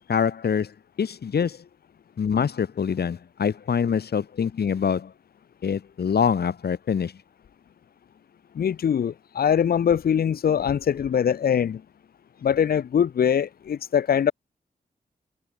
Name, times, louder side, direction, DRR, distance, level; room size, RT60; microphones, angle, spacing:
voice 1, 0.0-1.6 2.2-5.1 5.6-7.1, left 7 dB, 85° left, 2.5 m, -25 dB
voice 2, 8.6-11.8 12.4-14.3, left 8 dB, 70° left, 0.6 m, -22 dB
wide cardioid pair, 145°, 16 cm